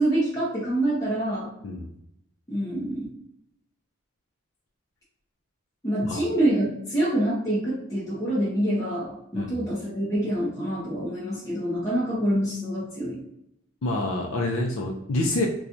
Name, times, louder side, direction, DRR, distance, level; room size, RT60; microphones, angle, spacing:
voice 1, 0.0-1.5 2.5-3.1 5.8-13.2, right 1 dB, 15° left, -8 dB, 0.8 m, -26 dB
voice 2, 13.8-15.5, left 2 dB, 75° left, 0 dB, 0.5 m, -27 dB
4.2 x 2.3 x 2.5 m, 0.78 s
head